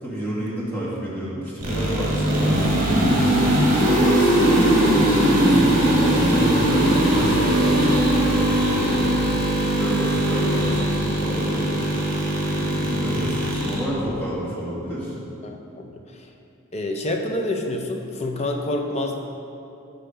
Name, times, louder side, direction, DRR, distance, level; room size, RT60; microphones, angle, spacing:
voice 1, 0.0-5.6 5.9-8.9 9.8-11.7 12.4-15.1, equal, 10° left, -8 dB, 1.8 m, -30 dB
sound 1, 1.6-13.8, right 1 dB, 45° right, 1.7 m, -20 dB
voice 2, 15.4-16.3 16.7-19.1, left 1 dB, 30° left, 2 dB, 0.6 m, -28 dB
6.8 x 6.5 x 5.1 m, 2.7 s
head